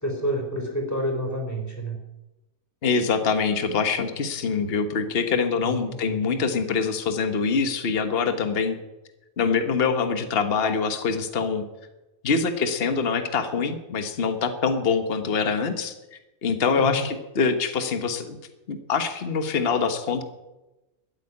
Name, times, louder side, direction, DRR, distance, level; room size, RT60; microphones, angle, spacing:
voice 1, 0.0-2.0 5.6-6.4 16.8-17.0, equal, 10° left, 0 dB, 4.2 m, -29 dB
voice 2, 2.8-8.8 9.4-11.6 12.2-18.4 18.7-20.2, left 5 dB, 45° left, 8 dB, 1.4 m, -24 dB
13.5 x 8.3 x 9.8 m, 1.0 s
omnidirectional pair, 1.5 m